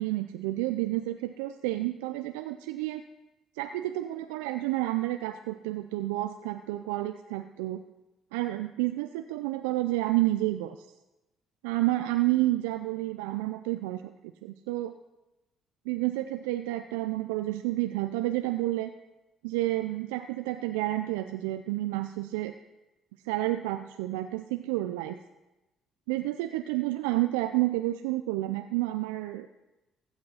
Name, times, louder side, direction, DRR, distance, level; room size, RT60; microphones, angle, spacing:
voice 1, 0.0-3.0 3.6-7.8 8.3-10.9 11.6-14.0 14.4-14.9 15.9-18.9 19.4-22.5 23.2-25.2 26.1-29.5, right 17 dB, 80° right, 9 dB, 0.4 m, -30 dB
15.0 x 6.3 x 5.6 m, 1.0 s
hypercardioid pair, 55°, 0 cm